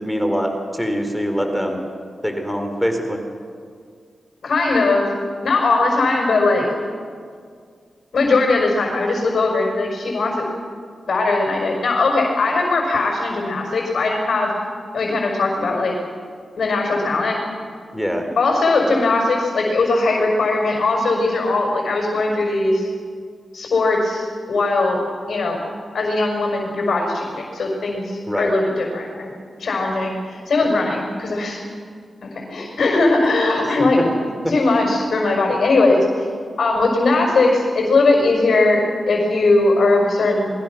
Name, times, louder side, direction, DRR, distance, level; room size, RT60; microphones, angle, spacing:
voice 1, 0.0-1.9 2.2-3.2 17.9-18.2 28.3-28.5, equal, 5° left, 4 dB, 4.1 m, -23 dB
voice 2, 4.4-5.1 5.4-6.7 8.1-10.5 11.1-14.6 14.9-16.0 16.6-17.4 18.4-22.9 23.5-25.6 25.9-29.3 29.6-31.6 32.2-34.0 34.5-36.3 36.6-40.5, left 3 dB, 70° left, 0 dB, 5.6 m, -19 dB
27.5 x 22.5 x 6.2 m, 2.1 s
cardioid pair, 55°, 0 cm